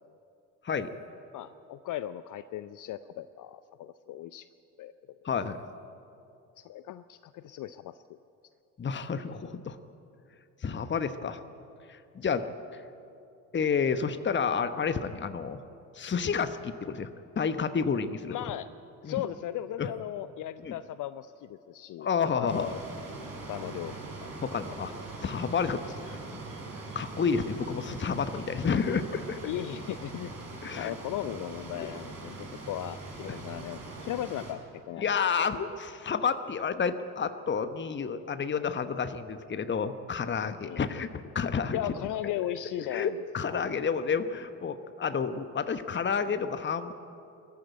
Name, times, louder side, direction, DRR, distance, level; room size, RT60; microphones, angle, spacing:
voice 1, 1.3-4.5 4.8-5.2 6.6-8.0 12.3-12.4 18.3-18.7 19.0-22.1 22.4-22.8 23.5-24.3 29.4-30.3 30.8-35.2 40.6-40.8 41.7-43.2 43.4-43.6, left 12 dB, 45° left, 14 dB, 0.6 m, -37 dB
voice 2, 5.2-5.6 8.8-9.8 10.6-11.4 11.9-12.5 13.5-15.6 15.9-17.1 17.4-18.3 19.0-19.2 19.8-19.9 20.6-20.8 22.0-22.7 24.4-24.9 25.2-26.4 26.9-29.4 30.6-30.9 31.8-31.9 33.3-33.4 35.0-41.9 42.5-42.6 42.9-46.9, left 6 dB, 25° left, 10 dB, 1.1 m, -30 dB
sound 1, 22.5-34.5, right 3 dB, 45° right, 5.5 m, -42 dB
21.0 x 14.5 x 9.0 m, 2.6 s
figure-of-eight pair, 50°, 45 cm